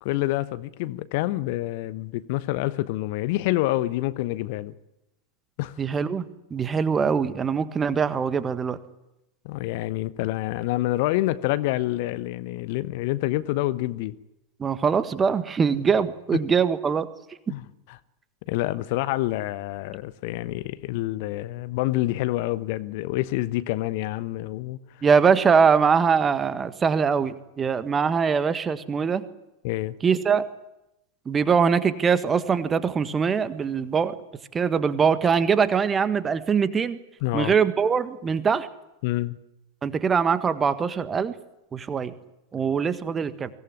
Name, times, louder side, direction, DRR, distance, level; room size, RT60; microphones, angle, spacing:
voice 1, 0.0-4.7 5.6-5.8 9.4-14.1 16.3-16.4 17.5-18.0 18.5-24.8 29.6-29.9 37.2-37.5 39.0-39.4, left 17 dB, 50° left, 1.0 m, -27 dB
voice 2, 5.8-6.2 6.5-8.8 14.6-17.1 25.0-29.2 30.0-30.4 31.2-34.2 34.5-37.0 37.3-38.7 39.8-41.4 41.7-42.1 42.5-43.5, right 6 dB, 20° right, 1.6 m, -22 dB
24.0 x 18.0 x 9.8 m
figure-of-eight pair, 90°, 0 cm